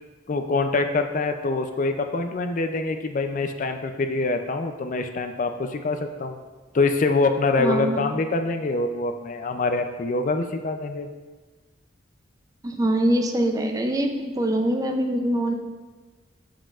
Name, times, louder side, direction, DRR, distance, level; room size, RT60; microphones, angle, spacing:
voice 1, 0.3-6.4 6.7-11.1, left 3 dB, 40° left, 6 dB, 0.4 m, -25 dB
voice 2, 7.6-8.0 12.6-15.5, right 1 dB, 20° right, 5 dB, 0.4 m, -23 dB
7.5 x 7.2 x 2.4 m, 1.3 s
head